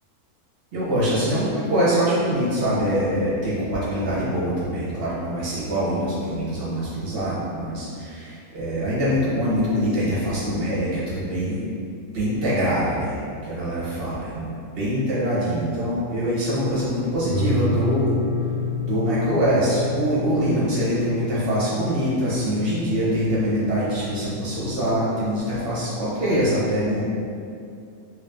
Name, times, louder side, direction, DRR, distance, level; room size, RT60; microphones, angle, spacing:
voice 1, 0.7-11.6 12.1-13.1 13.4-14.5 14.8-18.1 18.8-27.1, equal, 45° right, -9 dB, 1.1 m, -24 dB
sound 1, 17.3-26.3, left 4 dB, 85° left, 1.1 m, -30 dB
3.3 x 2.7 x 3.5 m, 2.4 s
omnidirectional pair, 1.6 m